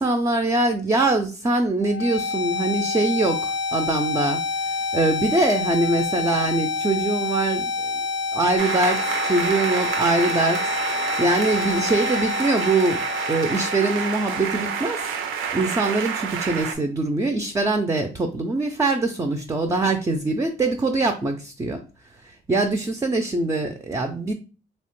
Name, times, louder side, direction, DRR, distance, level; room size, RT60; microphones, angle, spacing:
voice 1, 0.0-7.7 8.3-10.8 11.2-15.1 15.5-21.8 22.2-24.3, right 2 dB, 15° right, 5 dB, 0.3 m, -23 dB
sound 1, 1.8-15.8, left 4 dB, 65° left, 0.5 m, -28 dB
sound 2, 8.6-16.7, right 7 dB, 90° right, 0.5 m, -28 dB
2.8 x 2.1 x 2.9 m, 0.35 s
cardioid pair, 90°, 20 cm